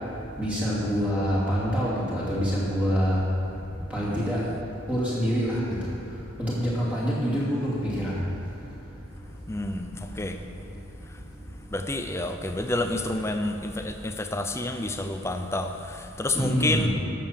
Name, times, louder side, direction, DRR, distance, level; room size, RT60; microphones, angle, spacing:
voice 1, 0.4-3.2 3.9-4.4 4.9-5.6 6.4-8.2 16.3-16.9, equal, 5° right, -9 dB, 2.7 m, -26 dB
voice 2, 3.8-4.4 9.5-10.4 11.7-16.9, left 2 dB, 15° left, 6 dB, 0.5 m, -29 dB
12.0 x 6.9 x 7.4 m, 2.7 s
head